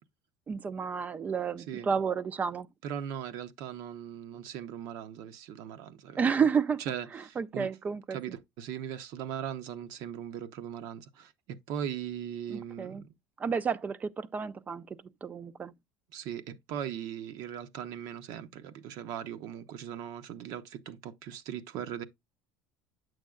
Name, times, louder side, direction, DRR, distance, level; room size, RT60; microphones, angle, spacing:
voice 1, 0.5-2.7 6.2-6.8 7.1-8.2 12.5-13.0 13.4-14.9 15.2-15.7, right 6 dB, 25° right, 0.3 m, -31 dB
voice 2, 2.8-6.3 6.9-7.7 8.1-13.1 16.1-22.0, right 9 dB, 65° right, 0.7 m, -39 dB
8.4 x 6.3 x 2.3 m
cardioid pair, 125°, 7 cm